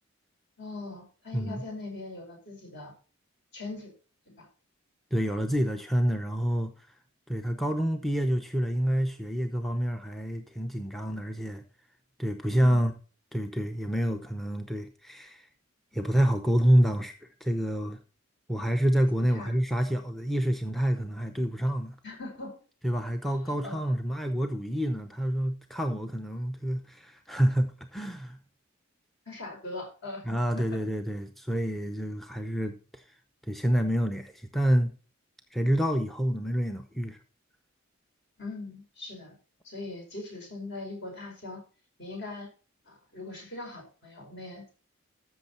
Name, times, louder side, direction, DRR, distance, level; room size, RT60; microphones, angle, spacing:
voice 1, 0.6-2.9 3.5-3.9 4.3-4.5 19.3-19.5 22.0-22.6 23.5-23.8 29.2-30.6 38.4-39.3 39.6-41.6 42.0-42.5 42.8-44.7, left 2 dB, 55° left, 5.2 m, -41 dB
voice 2, 5.1-6.9 7.3-11.6 12.2-12.9 13.3-15.5 15.9-18.0 18.5-22.0 22.8-28.4 30.3-33.0 33.4-34.9 35.5-37.2, equal, ahead, 0.6 m, -28 dB
13.5 x 6.4 x 4.3 m
head